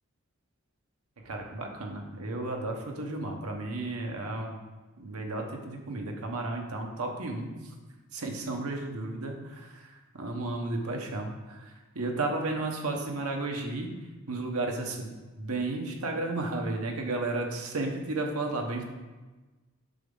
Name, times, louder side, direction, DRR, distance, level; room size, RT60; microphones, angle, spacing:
voice 1, 1.2-4.6 5.0-7.5 8.1-11.6 11.9-13.9 14.3-15.1 15.4-18.8, right 2 dB, 85° right, 2 dB, 1.1 m, -33 dB
7.4 x 5.2 x 3.8 m, 1.2 s
head